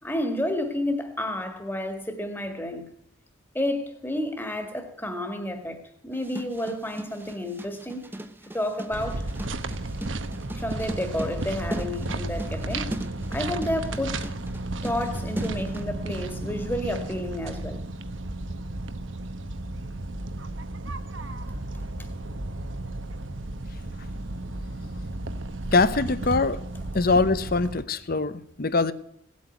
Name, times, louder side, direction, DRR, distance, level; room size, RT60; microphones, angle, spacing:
voice 1, 0.0-2.9 3.5-8.1 8.5-9.3 10.5-13.0 13.3-14.3 14.8-17.8 22.0-22.1, left 1 dB, 10° left, 1.9 m, -30 dB
sound 1, 6.1-15.9, equal, 10° right, 0.9 m, -38 dB
sound 2, 8.9-27.8, right 2 dB, 65° right, 1.1 m, -33 dB
voice 2, 25.7-26.6 26.9-28.9, left 3 dB, 45° left, 0.8 m, -23 dB
17.5 x 8.5 x 9.2 m
head